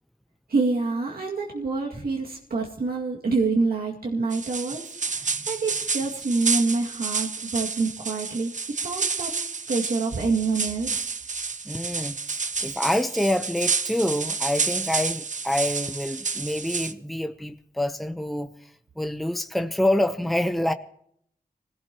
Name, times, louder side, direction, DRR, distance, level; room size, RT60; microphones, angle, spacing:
voice 1, 0.5-9.4 9.7-11.1, right 3 dB, 90° right, 2.3 m, -27 dB
sound 1, 4.3-16.9, right 5 dB, 55° right, 0.8 m, -30 dB
voice 2, 11.6-12.2 12.6-20.7, left 1 dB, ahead, 0.8 m, -27 dB
26.0 x 16.5 x 3.0 m
cardioid pair, 65°, 15 cm